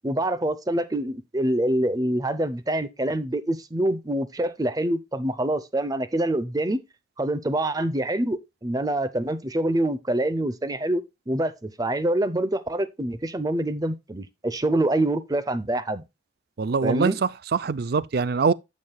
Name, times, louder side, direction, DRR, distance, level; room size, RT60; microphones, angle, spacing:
voice 1, 0.0-6.8 7.2-16.0 16.8-17.2, right 1 dB, 20° right, 0.7 m, -26 dB
voice 2, 16.6-18.5, right 5 dB, 55° right, 0.4 m, -23 dB
9.3 x 7.5 x 2.3 m
head